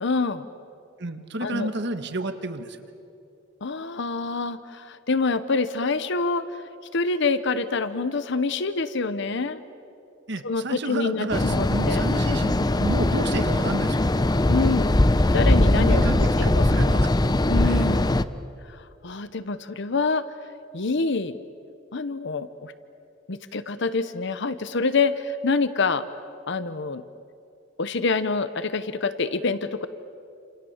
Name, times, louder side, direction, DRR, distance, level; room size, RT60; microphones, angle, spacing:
voice 1, 0.0-0.5 1.4-1.7 3.6-6.6 6.9-9.6 10.4-12.0 14.5-15.0 15.3-16.0 16.4-16.8 17.4-18.2 18.7-20.2 20.7-21.4 21.9-22.7 23.3-26.0 26.5-27.0 27.8-29.9, left 4 dB, 65° left, 13 dB, 0.9 m, -26 dB
voice 2, 1.0-2.8 10.3-14.1 15.7-17.1 17.6-17.9, right 1 dB, 60° right, 8 dB, 1.7 m, -30 dB
sound 1, 11.3-18.2, left 1 dB, 20° left, 0.7 m, -21 dB
29.5 x 27.5 x 7.3 m, 2.6 s
head